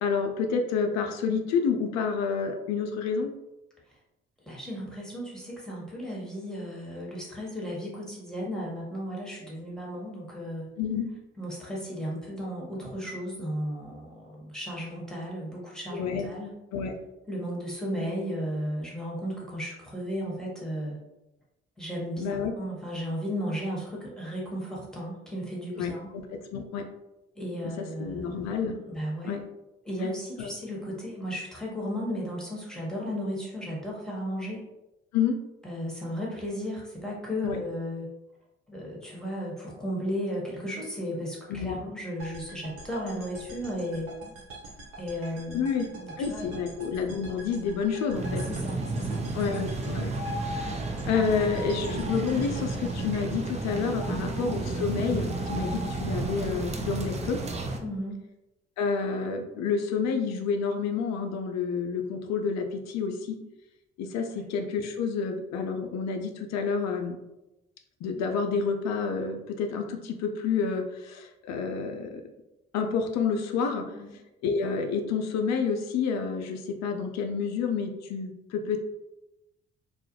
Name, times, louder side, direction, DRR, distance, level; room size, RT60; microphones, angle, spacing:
voice 1, 0.0-3.3 10.8-11.1 15.9-16.3 16.7-17.0 22.2-22.5 25.8-26.9 27.8-28.8 29.2-29.4 30.4-30.5 35.1-35.4 37.4-37.6 41.5-41.8 45.5-45.9 46.2-48.4 49.3-50.1 51.0-57.4 58.8-63.4 64.0-67.2 68.0-72.2 72.7-73.8 74.4-78.8, left 5 dB, 60° left, 4 dB, 0.5 m, -29 dB
voice 2, 4.5-10.7 11.4-16.5 17.3-21.0 21.8-26.1 27.3-28.5 28.9-29.4 29.8-34.6 35.6-38.1 38.7-44.1 45.0-46.6 48.5-49.5 54.0-54.3 57.8-58.2 64.3-64.4 73.5-73.6 73.9-74.1, equal, ahead, -4 dB, 1.1 m, -35 dB
sound 1, 42.2-54.4, right 2 dB, 80° right, 0.7 m, -46 dB
sound 2, 48.1-57.8, right 2 dB, 20° right, 0.4 m, -32 dB
2.3 x 2.0 x 2.8 m, 0.95 s
hypercardioid pair, 40°, 31 cm